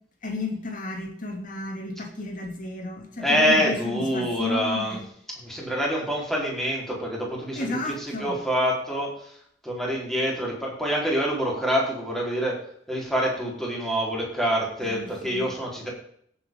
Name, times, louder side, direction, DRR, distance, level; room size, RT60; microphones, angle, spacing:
voice 1, 0.2-5.0 7.6-8.4 14.8-15.5, left 2 dB, 45° left, 3 dB, 2.7 m, -33 dB
voice 2, 3.2-5.0 5.4-9.3 9.6-12.6 12.9-15.9, equal, ahead, -4 dB, 4.2 m, -26 dB
17.5 x 8.3 x 3.8 m, 0.65 s
head